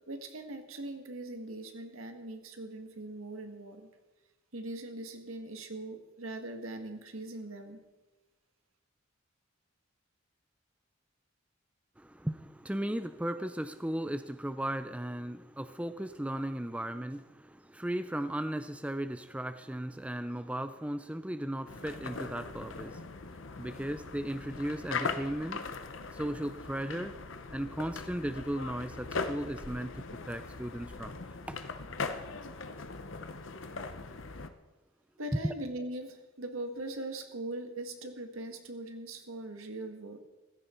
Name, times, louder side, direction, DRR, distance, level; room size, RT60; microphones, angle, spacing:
voice 1, 0.1-3.9 4.5-7.8 35.2-40.2, right 1 dB, 85° right, 1.7 m, -41 dB
voice 2, 12.0-25.7 26.1-27.2 27.5-29.9 30.3-31.2 31.5-31.6 35.4-35.5, right 1 dB, 5° right, 0.4 m, -36 dB
sound 1, 21.7-34.5, left 4 dB, 65° left, 0.9 m, -40 dB
15.5 x 13.5 x 4.4 m
head